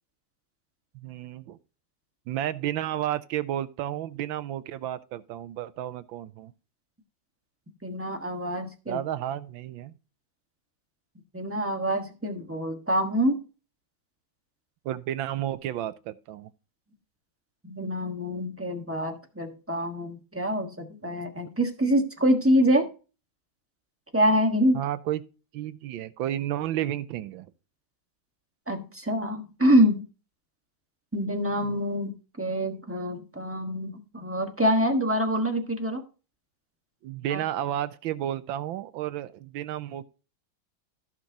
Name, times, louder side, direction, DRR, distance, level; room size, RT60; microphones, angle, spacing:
voice 1, 0.9-1.6 2.3-6.5 8.9-9.9 14.8-16.5 21.0-21.2 24.7-25.2 25.5-27.5 31.6-31.7 37.0-40.0, right 12 dB, 75° right, 1.3 m, -32 dB
voice 2, 7.8-9.0 11.3-13.4 17.6-22.9 24.1-24.8 28.7-30.0 31.1-36.0 37.3-37.4, equal, 10° right, 0.9 m, -25 dB
15.0 x 6.0 x 2.8 m
omnidirectional pair, 2.3 m